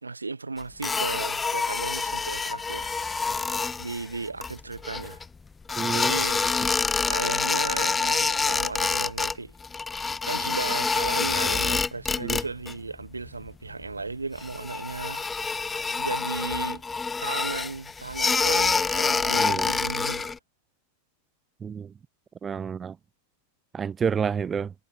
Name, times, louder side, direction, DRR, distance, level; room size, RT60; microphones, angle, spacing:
voice 1, 0.0-2.9 3.8-5.2 5.9-6.4 7.1-9.5 10.2-15.2 16.0-16.8 17.2-20.3, right 3 dB, 80° right, 3.0 m, -35 dB
sound 1, 0.8-5.2 5.7-9.3 9.6-12.7 13.0-13.5 13.8-13.9 14.3-20.4, left 4 dB, 15° left, 0.9 m, -27 dB
voice 2, 5.8-6.1 12.2-12.4 19.4-19.7 21.6-21.9 22.4-23.0 23.7-24.7, right 7 dB, 20° right, 0.7 m, -29 dB
figure-of-eight pair, 90°, 0 cm